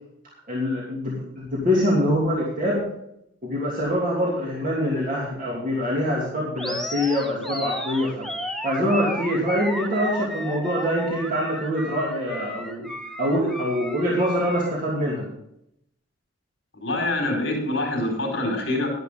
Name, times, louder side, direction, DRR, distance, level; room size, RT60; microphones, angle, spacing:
voice 1, 0.5-2.8 3.4-8.3 8.6-12.9 13.2-15.3, equal, 40° right, -5 dB, 2.9 m, -24 dB
Animal, 6.6-14.7, left 1 dB, ahead, 0.8 m, -33 dB
voice 2, 16.8-18.9, left 1 dB, 60° left, 0 dB, 5.0 m, -25 dB
12.0 x 11.0 x 3.9 m, 0.78 s
head